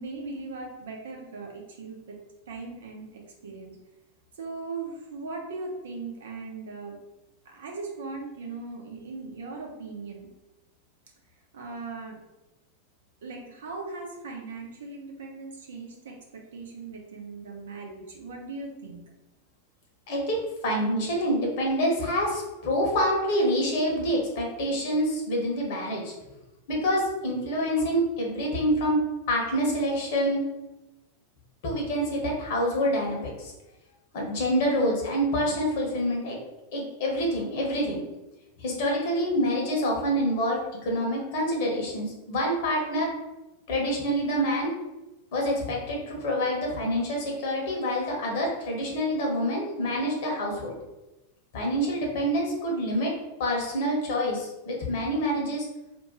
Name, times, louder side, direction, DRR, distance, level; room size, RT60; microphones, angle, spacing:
voice 1, 0.0-2.2 2.5-3.8 4.3-7.0 7.4-10.3 11.5-12.2 13.2-19.0, right 3 dB, 60° right, 0 dB, 0.7 m, -39 dB
voice 2, 20.1-26.1 26.7-29.0 29.3-30.4 31.6-33.5 34.1-36.4 36.7-38.0 38.6-43.1 43.7-44.7 45.3-50.8 51.5-53.1 53.4-55.7, equal, 50° left, -1 dB, 1.1 m, -27 dB
2.8 x 2.4 x 4.0 m, 1.0 s
figure-of-eight pair, 90°, 0 cm